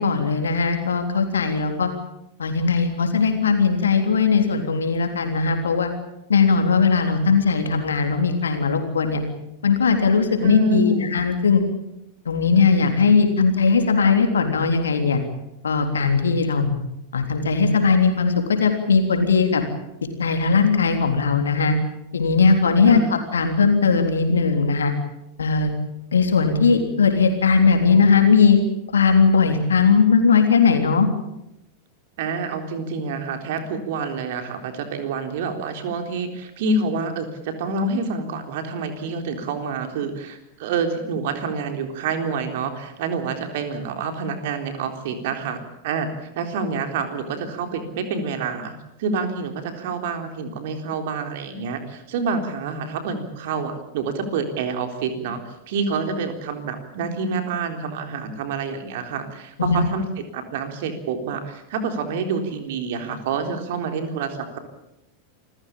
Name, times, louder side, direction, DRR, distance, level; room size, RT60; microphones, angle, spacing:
voice 1, 0.0-1.9 2.4-5.9 6.3-9.2 9.6-11.6 12.3-15.2 15.6-16.8 17.1-19.6 20.2-21.7 22.1-23.0 23.3-24.9 25.4-25.7 26.1-28.6 28.9-31.1 59.6-59.8, left 5 dB, 70° left, 5 dB, 3.5 m, -19 dB
voice 2, 10.4-11.1 22.9-23.1 32.2-45.6 45.8-46.1 46.4-48.7 49.0-55.4 55.7-64.6, right 4 dB, 55° right, 6 dB, 3.8 m, -27 dB
27.5 x 15.5 x 8.8 m, 0.88 s
figure-of-eight pair, 90°, 0 cm